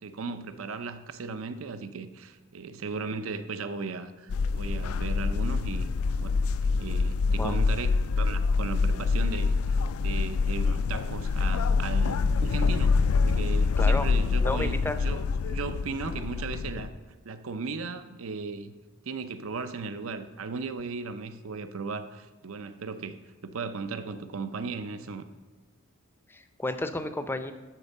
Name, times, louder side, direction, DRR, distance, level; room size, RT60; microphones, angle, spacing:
voice 1, 0.0-5.9 6.2-6.4 6.8-7.9 8.2-12.9 13.2-16.9 17.2-18.7 19.0-25.2, right 4 dB, 65° right, 10 dB, 0.6 m, -36 dB
sound 1, 4.3-16.9, left 4 dB, 75° left, 0.4 m, -26 dB
voice 2, 13.8-14.1 14.4-15.0 26.3-27.5, left 2 dB, 10° left, 9 dB, 0.5 m, -31 dB
12.0 x 4.4 x 6.6 m, 1.3 s
head